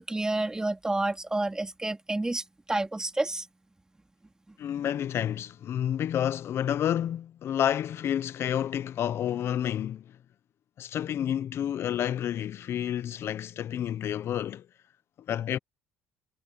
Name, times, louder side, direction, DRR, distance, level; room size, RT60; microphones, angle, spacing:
voice 1, 0.0-3.5, right 2 dB, 15° right, 2.3 m, -29 dB
voice 2, 4.6-10.2 10.8-14.7 15.3-15.6, left 10 dB, 55° left, 0.8 m, -29 dB
supercardioid pair, 75°, 5 cm